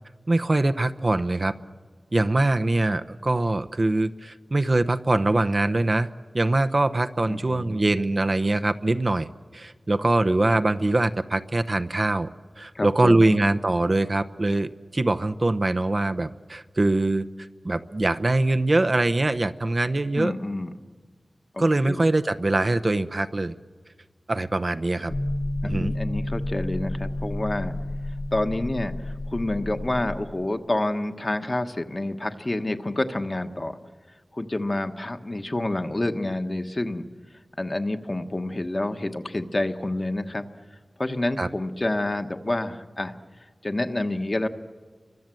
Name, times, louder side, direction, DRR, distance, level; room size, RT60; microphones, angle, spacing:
voice 1, 0.3-1.5 2.1-6.1 6.3-12.3 12.6-17.3 17.6-20.3 21.6-23.5 24.3-25.1 25.6-25.9 41.4-41.5, right 2 dB, 45° right, 10 dB, 0.8 m, -23 dB
voice 2, 7.3-8.0 12.7-13.4 20.1-20.7 21.5-22.0 25.6-27.7 28.3-33.8 34.3-37.1 37.6-40.5 41.0-43.1 43.6-44.5, left 1 dB, 35° left, 7 dB, 1.3 m, -28 dB
sound 1, 25.1-30.2, left 1 dB, 70° left, 2.8 m, -30 dB
30.0 x 24.0 x 7.7 m, 1.5 s
wide cardioid pair, 65°, 0 cm